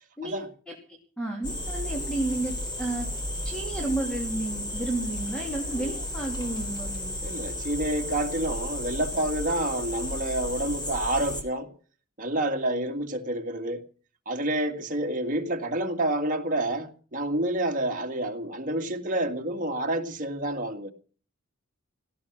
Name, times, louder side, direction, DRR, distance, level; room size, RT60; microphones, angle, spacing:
voice 1, 0.2-3.1 3.4-7.4, right 2 dB, 5° left, 1 dB, 2.9 m, -32 dB
sound 1, 1.4-11.4, left 1 dB, 20° left, 3.5 m, -33 dB
voice 2, 7.2-11.7 12.2-13.8 14.3-20.9, right 1 dB, 40° right, 4 dB, 2.0 m, -28 dB
17.5 x 13.5 x 6.0 m, 0.42 s
head